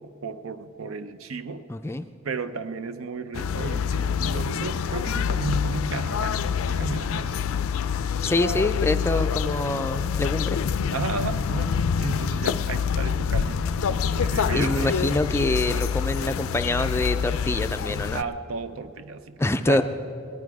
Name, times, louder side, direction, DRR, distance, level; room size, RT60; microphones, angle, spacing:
voice 1, 0.0-1.7 2.2-7.5 9.1-9.2 10.9-15.0 18.1-19.4 19.7-19.8, right 4 dB, 75° right, 11 dB, 0.6 m, -33 dB
voice 2, 1.7-2.1 8.2-10.6 14.5-18.2 19.4-19.8, left 2 dB, 10° left, 9 dB, 0.3 m, -25 dB
sound 1, 3.3-18.2, left 7 dB, 80° left, 0.4 m, -26 dB
19.0 x 11.5 x 4.7 m, 2.6 s
head